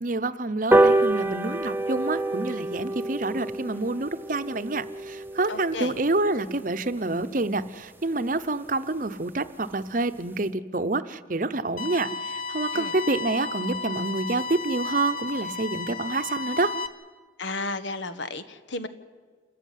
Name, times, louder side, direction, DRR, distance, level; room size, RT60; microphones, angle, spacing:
voice 1, 0.0-16.7, right 2 dB, 45° right, 11 dB, 0.8 m, -28 dB
sound 1, 0.7-7.5 7.9-8.0 8.3-8.4 8.7-8.8 9.1-9.2 9.4-9.7 10.1-10.2, right 2 dB, 10° right, 0.6 m, -27 dB
voice 2, 5.5-5.9 12.7-12.9 17.4-18.9, left 2 dB, 85° left, 11 dB, 1.4 m, -33 dB
sound 2, 11.8-16.9, left 4 dB, 45° left, 1.2 m, -33 dB
28.0 x 14.0 x 9.3 m, 1.5 s
head